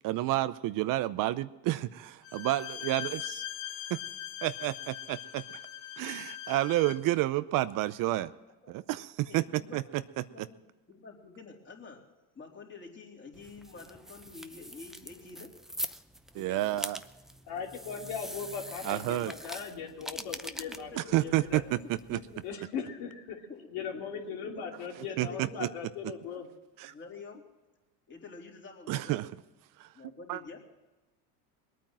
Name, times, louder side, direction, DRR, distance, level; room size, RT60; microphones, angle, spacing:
voice 1, 0.0-3.0 4.4-5.6 6.0-8.3 8.7-10.5 16.3-17.0 18.8-19.3 21.0-22.2 25.2-25.7 26.8-26.9 28.9-29.3 29.8-29.9 30.3-30.4, right 16 dB, 55° right, 14 dB, 0.7 m, -30 dB
Bowed string instrument, 2.2-7.1, left 11 dB, 80° left, 1.6 m, -41 dB
voice 2, 9.2-9.8 10.3-10.6 10.9-12.0 12.4-15.5 16.3-16.8 20.0-20.3 20.7-21.6 22.1-22.4 23.5-23.7 23.9-24.0 24.4-24.8 25.1-25.7 26.9-27.4 28.1-29.2 29.9-30.6, left 4 dB, 30° left, 0 dB, 3.6 m, -48 dB
sound 1, 13.3-22.6, equal, ahead, 0.6 m, -43 dB
voice 3, 17.5-21.6 22.4-23.4 23.7-26.5, left 6 dB, 65° left, 1 dB, 3.0 m, -39 dB
20.5 x 9.3 x 7.5 m, 1.1 s
supercardioid pair, 100°, 40 cm